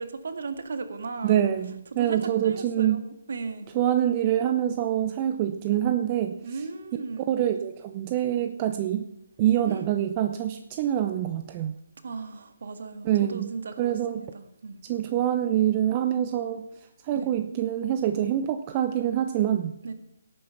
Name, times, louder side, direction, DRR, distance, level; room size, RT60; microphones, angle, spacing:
voice 1, 0.0-1.4 1.9-3.7 6.4-7.3 9.7-9.8 12.0-14.8 17.1-17.3 19.8-19.9, right 4 dB, 60° right, 9 dB, 1.8 m, -36 dB
voice 2, 1.2-3.0 3.7-6.4 7.3-9.1 9.4-11.7 13.0-13.5 13.8-14.2 14.8-16.6 17.0-19.7, right 11 dB, 30° right, 8 dB, 0.7 m, -25 dB
17.0 x 8.9 x 5.8 m, 0.77 s
figure-of-eight pair, 140°, 0 cm